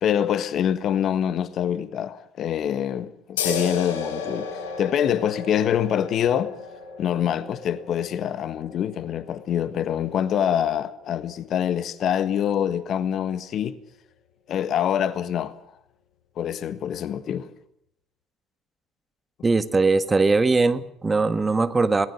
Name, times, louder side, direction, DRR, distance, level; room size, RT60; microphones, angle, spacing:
voice 1, 0.0-4.5 4.8-6.5 7.0-13.8 14.5-15.5 16.4-17.5, left 9 dB, 55° left, 1.5 m, -25 dB
sound 1, 3.4-10.5, left 5 dB, 80° left, 6.6 m, -34 dB
voice 2, 19.4-22.1, right 3 dB, 25° right, 1.7 m, -20 dB
22.0 x 19.5 x 6.9 m
hypercardioid pair, 60°, 0 cm